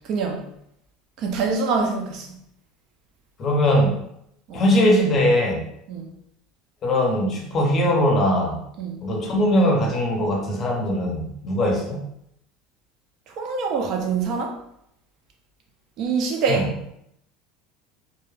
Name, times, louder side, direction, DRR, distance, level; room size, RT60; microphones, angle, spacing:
voice 1, 0.0-0.4 1.2-2.3 4.5-4.6 5.9-6.1 8.8-9.0 13.4-14.6 16.0-16.7, right 5 dB, 50° right, 2 dB, 0.4 m, -25 dB
voice 2, 3.4-4.0 4.5-5.6 6.8-8.6 9.0-12.0 16.5-16.6, left 1 dB, 30° left, 0 dB, 0.6 m, -20 dB
2.2 x 2.0 x 3.0 m, 0.75 s
supercardioid pair, 140°, 0 cm